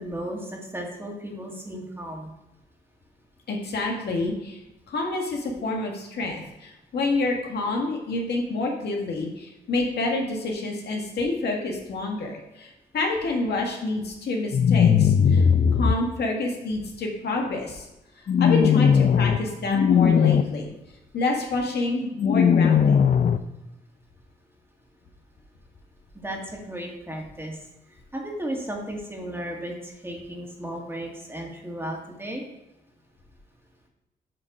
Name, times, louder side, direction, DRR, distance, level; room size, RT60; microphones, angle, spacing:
voice 1, 0.0-2.3 26.1-32.4, right 1 dB, 15° right, 0 dB, 2.1 m, -35 dB
voice 2, 3.5-4.6 4.9-15.4 15.8-17.9 18.4-20.7 21.1-22.9, left 2 dB, 70° left, 0 dB, 1.6 m, -28 dB
sound 1, 14.5-15.9 18.3-19.4 19.7-20.4 22.2-23.4, left 7 dB, 45° left, 0.5 m, -18 dB
7.7 x 3.8 x 6.0 m, 0.96 s
cardioid pair, 65°, 18 cm